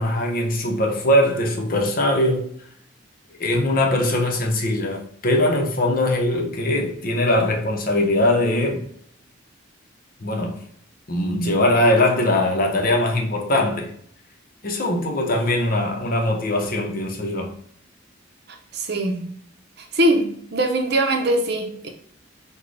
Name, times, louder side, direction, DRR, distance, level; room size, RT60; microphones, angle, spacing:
voice 1, 0.0-2.5 3.4-8.8 10.2-10.6 11.1-13.9 14.6-17.5, left 1 dB, 45° left, 0.7 m, -21 dB
voice 2, 18.7-19.3 19.8-21.9, right 1 dB, 55° right, 0.7 m, -22 dB
6.1 x 2.3 x 3.3 m
head